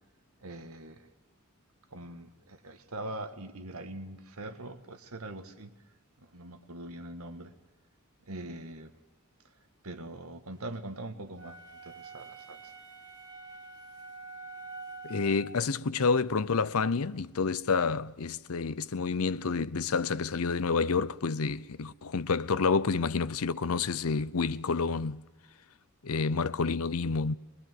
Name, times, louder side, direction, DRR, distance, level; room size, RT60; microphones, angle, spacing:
voice 1, 0.4-1.1 1.9-5.8 6.2-7.6 8.2-8.9 9.8-12.7, right 1 dB, 85° right, 1.7 m, -42 dB
sound 1, 11.3-15.6, right 3 dB, 55° right, 4.8 m, -46 dB
voice 2, 15.0-25.2 26.0-27.3, left 4 dB, 85° left, 0.7 m, -29 dB
23.5 x 21.0 x 7.7 m
head